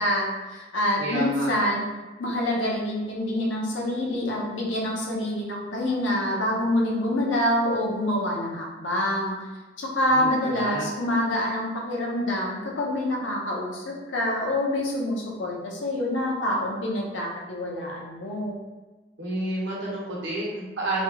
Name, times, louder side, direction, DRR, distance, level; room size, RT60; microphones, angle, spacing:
voice 1, 0.0-1.9 2.2-9.4 9.8-18.6, left 1 dB, 75° left, -2 dB, 0.7 m, -26 dB
voice 2, 1.0-1.6 10.2-10.9 19.2-21.0, right 1 dB, 75° right, -5 dB, 1.1 m, -30 dB
3.1 x 2.3 x 2.9 m, 1.2 s
head